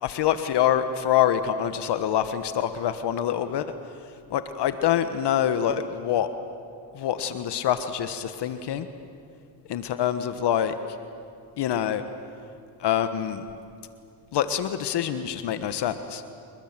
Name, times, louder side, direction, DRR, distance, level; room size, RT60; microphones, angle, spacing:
voice 1, 0.0-3.7 4.3-6.3 6.9-8.9 9.7-10.7 11.6-12.0 12.8-13.4 14.3-16.3, left 10 dB, 55° left, 10 dB, 1.4 m, -25 dB
30.0 x 21.5 x 7.5 m, 2.5 s
supercardioid pair, 85°, 47 cm